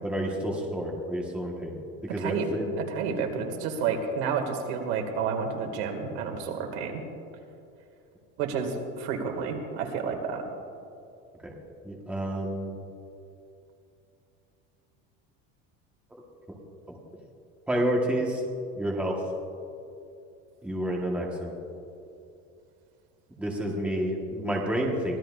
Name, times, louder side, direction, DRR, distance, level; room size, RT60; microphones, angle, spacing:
voice 1, 0.0-2.7 11.4-11.5 11.8-12.8 16.9-17.0 17.7-18.4 18.7-19.2 20.6-21.5 23.4-25.2, equal, 5° right, -2 dB, 1.3 m, -29 dB
voice 2, 2.8-7.1 8.4-10.4, right 6 dB, 75° right, 3 dB, 2.1 m, -30 dB
24.0 x 16.5 x 2.5 m, 2.6 s
cardioid pair, 175°, 31 cm